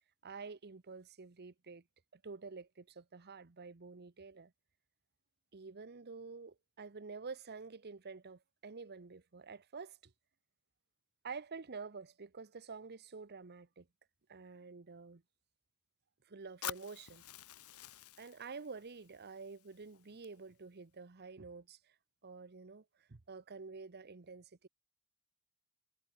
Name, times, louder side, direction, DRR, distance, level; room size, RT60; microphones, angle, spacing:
voice 1, 0.2-1.8 2.1-4.5 5.5-10.1 11.2-13.9 14.3-15.2 16.3-17.2 18.2-21.9 22.2-24.7, right 4 dB, 45° right, 0.9 m, -49 dB
Fire, 16.6-20.6, left 10 dB, 75° left, 1.8 m, -49 dB
head